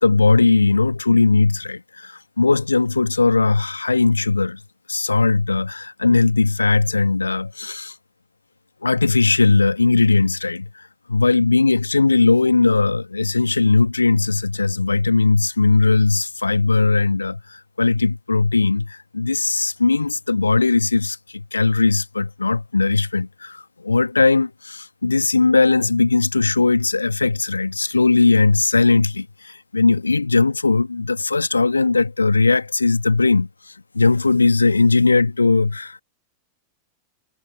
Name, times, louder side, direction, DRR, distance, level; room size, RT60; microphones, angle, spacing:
voice 1, 0.0-4.6 4.9-7.9 8.8-33.5 33.9-36.0, left 3 dB, 80° left, 1.7 m, -18 dB
figure-of-eight pair, 90°, 0 cm